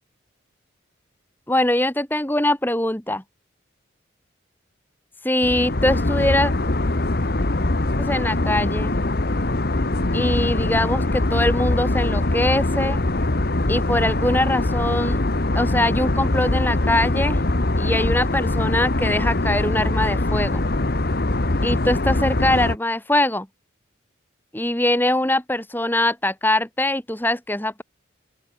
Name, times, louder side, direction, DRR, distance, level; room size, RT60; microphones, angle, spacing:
voice 1, 1.5-3.2 5.2-6.5 8.0-9.0 10.1-13.0 13.7-15.2 15.6-17.4 17.8-20.6 21.6-23.5 24.5-27.8, left 1 dB, 10° left, 1.7 m, -22 dB
sound 1, 5.4-22.8, left 2 dB, 50° left, 1.2 m, -22 dB
open air
head